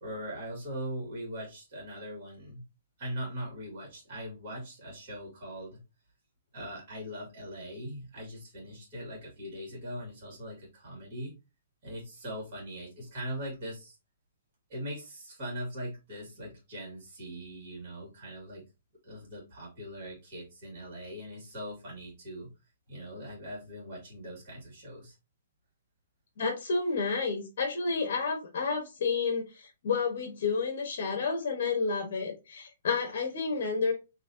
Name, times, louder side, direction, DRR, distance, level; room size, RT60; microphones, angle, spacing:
voice 1, 0.0-2.6 3.0-5.8 6.5-11.3 11.8-14.0 14.7-18.6 19.0-22.5 22.9-25.2, equal, 30° right, 1.8 m, -41 dB
voice 2, 26.4-33.9, left 4 dB, 45° left, 1.0 m, -30 dB
4.1 x 2.7 x 2.7 m
hypercardioid pair, 180°, 0 cm